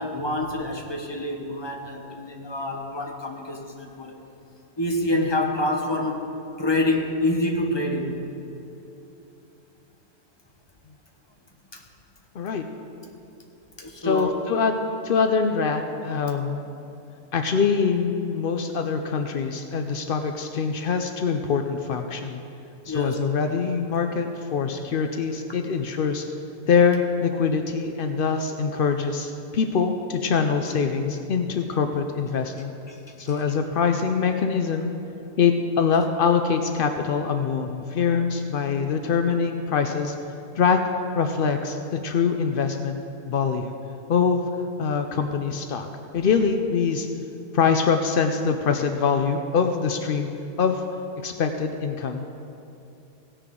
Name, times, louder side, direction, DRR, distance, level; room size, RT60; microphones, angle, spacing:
voice 1, 0.0-4.2 4.8-6.2 6.6-8.2 11.7-11.8 13.8-14.4 22.9-23.2 32.9-33.0, left 1 dB, 20° left, 1 dB, 1.0 m, -27 dB
voice 2, 14.0-14.8 15.0-16.6 17.3-22.4 22.9-26.3 26.7-32.7 33.2-34.9 35.4-40.1 40.6-40.8 41.2-43.0 43.3-43.8 44.1-44.5 44.8-45.9 46.1-47.1 47.5-50.3 50.6-50.8 51.2-52.3, left 6 dB, 85° left, 5 dB, 0.4 m, -24 dB
16.5 x 9.9 x 3.7 m, 2.8 s
omnidirectional pair, 1.7 m